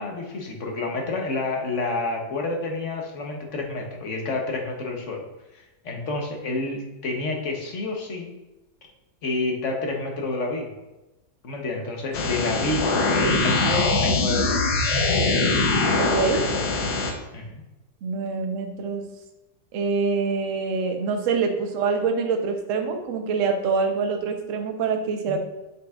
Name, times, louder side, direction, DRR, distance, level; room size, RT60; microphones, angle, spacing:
voice 1, 0.0-5.2 5.5-8.3 9.2-10.7 11.4-13.0 13.4-14.6 16.3-16.6 17.3-17.6 25.3-25.4, left 2 dB, 50° left, 1 dB, 1.1 m, -29 dB
sound 1, 12.1-17.1, left 3 dB, 85° left, 1.6 m, -22 dB
voice 2, 16.0-16.4 18.0-19.0 19.7-25.4, right 5 dB, 55° right, 4 dB, 1.0 m, -25 dB
7.6 x 5.8 x 2.4 m, 1.0 s
omnidirectional pair, 1.9 m